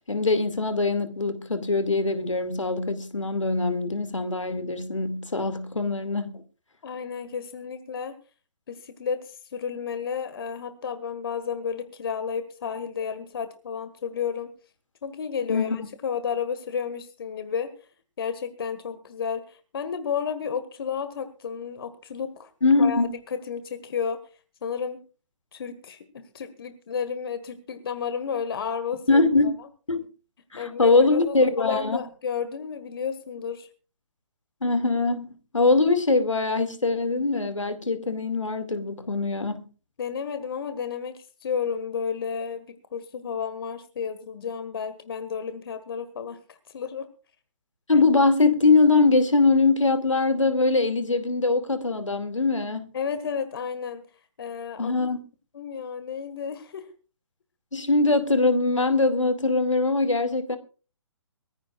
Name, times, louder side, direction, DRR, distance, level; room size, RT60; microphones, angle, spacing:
voice 1, 0.1-6.4 15.5-15.8 22.6-23.1 29.1-29.5 29.9-30.0 30.5-32.0 34.6-39.7 47.9-52.9 54.8-55.2 57.7-60.6, left 3 dB, 75° left, 2.3 m, -22 dB
voice 2, 6.8-8.1 8.7-14.5 15.0-17.7 18.2-22.5 22.8-24.2 24.6-25.0 25.5-29.2 30.6-33.7 40.0-47.1 52.9-54.0 54.4-55.1 55.5-56.9, left 7 dB, 50° left, 1.7 m, -32 dB
23.5 x 15.5 x 2.4 m
figure-of-eight pair, 135°, 16 cm